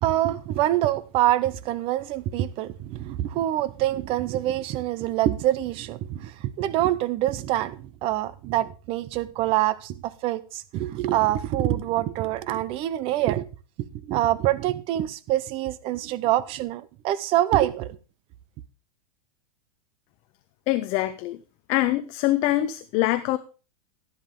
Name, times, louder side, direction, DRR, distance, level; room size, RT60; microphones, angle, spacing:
voice 1, 0.0-13.5 14.0-18.0, right 14 dB, 30° right, 0.6 m, -25 dB
voice 2, 20.7-21.4 21.7-23.4, left 15 dB, 35° left, 0.6 m, -24 dB
12.0 x 10.5 x 3.7 m
supercardioid pair, 160°, 19 cm